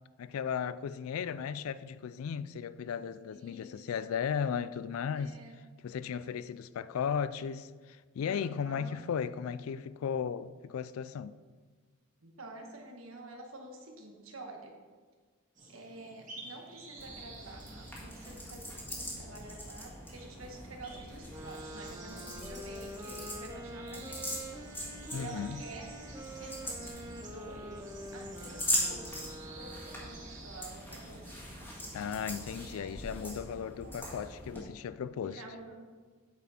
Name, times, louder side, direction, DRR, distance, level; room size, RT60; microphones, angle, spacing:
voice 1, 0.2-5.4 5.8-11.3 25.1-25.6 31.9-35.4, left 7 dB, 75° left, 0.3 m, -36 dB
voice 2, 3.3-3.8 5.1-5.6 8.3-9.0 12.2-14.7 15.7-24.4 25.1-25.9 26.3-31.6 32.0-32.1 32.5-33.3 33.8-34.0 35.2-35.8, right 2 dB, 75° right, 1.4 m, -49 dB
sound 1, 15.5-32.2, right 3 dB, 35° right, 2.1 m, -53 dB
sound 2, 17.0-34.6, equal, 10° left, 1.6 m, -41 dB
sound 3, 21.3-30.5, equal, 15° right, 0.5 m, -46 dB
8.6 x 6.2 x 4.3 m
head